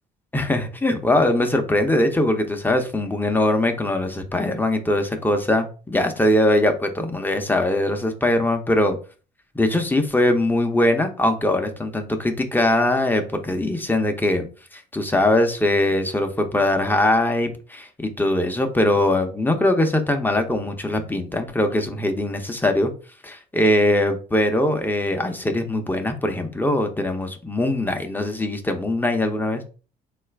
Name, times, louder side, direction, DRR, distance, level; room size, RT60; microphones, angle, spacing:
voice 1, 0.3-9.0 9.5-14.5 14.7-22.9 23.2-29.6, left 1 dB, 10° left, 5 dB, 0.6 m, -21 dB
3.7 x 2.4 x 3.2 m, 0.36 s
cardioid pair, 110°, 17 cm